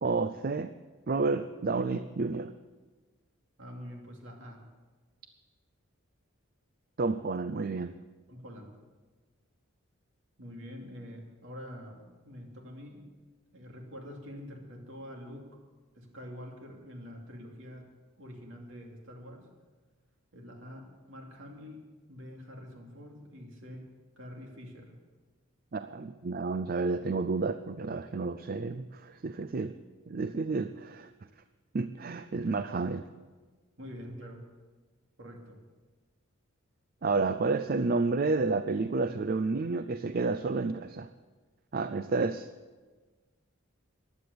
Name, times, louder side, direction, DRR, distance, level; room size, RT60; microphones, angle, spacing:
voice 1, 0.0-0.7 1.1-2.5 7.0-7.9 25.7-29.8 30.1-31.1 31.7-33.1 37.0-41.1 41.7-42.5, right 3 dB, 45° right, 12 dB, 0.4 m, -30 dB
voice 2, 3.6-4.6 8.3-8.8 10.4-13.1 13.5-15.6 15.9-17.9 18.2-19.5 20.3-25.0 33.8-34.4 35.2-35.6, equal, 60° right, 1 dB, 2.8 m, -46 dB
15.5 x 11.5 x 6.8 m, 1.3 s
head